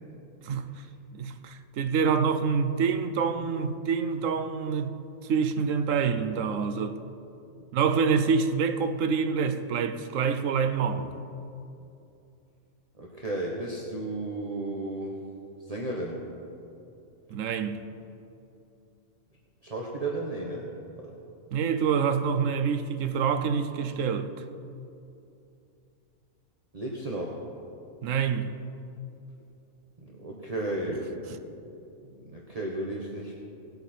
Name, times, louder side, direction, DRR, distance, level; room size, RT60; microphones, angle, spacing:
voice 1, 1.1-4.9 5.3-7.0 7.7-11.1 17.3-17.8 21.5-24.3 28.0-28.5, right 6 dB, 85° right, 1.1 m, -26 dB
voice 2, 13.0-15.1 15.7-16.2 19.6-20.7 26.7-27.4 30.0-31.4 32.1-33.4, right 2 dB, 30° right, 1.2 m, -33 dB
18.5 x 8.0 x 4.4 m
omnidirectional pair, 1.3 m